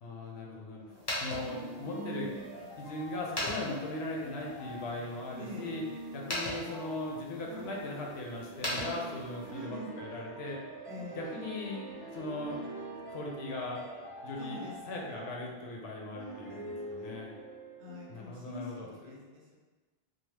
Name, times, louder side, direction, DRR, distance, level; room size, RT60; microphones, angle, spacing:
voice 1, 0.0-0.8 1.2-2.3 2.8-5.8 6.1-10.6 10.9-12.6 12.9-13.8 14.2-14.6 14.9-17.3 18.1-19.2, left 2 dB, 80° left, -1 dB, 0.8 m, -39 dB
voice 2, 0.7-1.1 1.8-2.7 5.4-5.8 6.6-6.9 7.4-7.8 9.5-10.4 10.9-11.4 14.4-15.2 16.2-17.1 17.8-19.5, equal, 80° right, -2 dB, 0.9 m, -46 dB
sound 1, 0.9-9.6, left 1 dB, 30° left, 0.6 m, -41 dB
Over the city Piano theme, 1.3-18.3, right 2 dB, 10° right, 0.9 m, -45 dB
2.8 x 2.0 x 3.1 m, 1.3 s
omnidirectional pair, 1.1 m